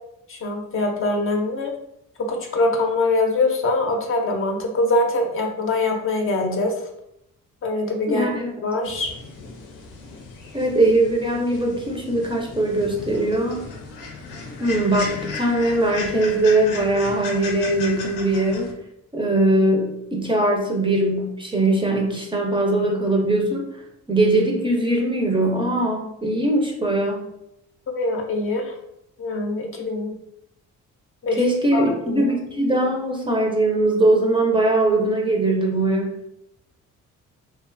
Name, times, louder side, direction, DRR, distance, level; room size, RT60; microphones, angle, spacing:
voice 1, 0.3-1.7 2.2-6.8 7.6-8.3 8.6-9.1 27.9-28.7 29.2-30.2 31.2-31.4 31.7-32.3, left 2 dB, 45° left, 2 dB, 0.5 m, -23 dB
voice 2, 8.1-8.5 10.5-13.6 14.6-18.7 19.1-23.7 24.1-27.2 31.4-36.1, right 1 dB, 15° right, 0 dB, 0.5 m, -21 dB
sound 1, 8.8-18.7, left 4 dB, 85° left, 0.6 m, -36 dB
2.4 x 2.3 x 2.5 m, 0.80 s
cardioid pair, 90°, 30 cm